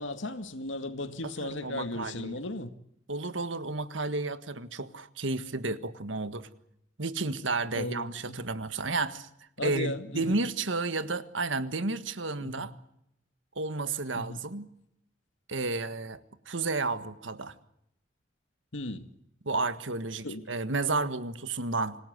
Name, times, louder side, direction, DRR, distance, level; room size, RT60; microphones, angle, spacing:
voice 1, 0.0-2.7 7.7-8.4 9.6-10.4 12.4-12.7 14.1-14.4 18.7-19.1 20.2-20.5, left 2 dB, 85° left, 2.1 m, -36 dB
voice 2, 1.2-2.4 3.1-6.5 7.0-9.3 9.6-12.7 13.6-14.7 15.5-17.5 19.5-22.0, right 3 dB, 85° right, 1.6 m, -32 dB
26.5 x 17.5 x 8.1 m
head